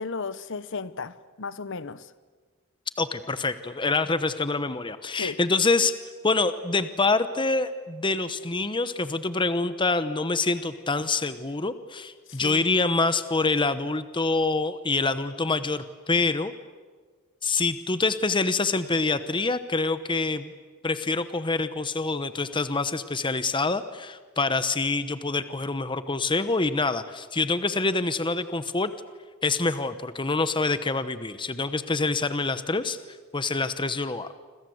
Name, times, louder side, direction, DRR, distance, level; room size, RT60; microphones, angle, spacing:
voice 1, 0.0-2.1 5.2-5.4 12.3-12.6, left 4 dB, 60° left, 16 dB, 1.0 m, -34 dB
voice 2, 3.0-5.9 6.2-16.5 17.4-20.5 20.8-28.9 29.4-33.0 33.3-34.3, left 3 dB, 25° left, 12 dB, 1.0 m, -26 dB
28.0 x 26.5 x 7.9 m, 1.5 s
head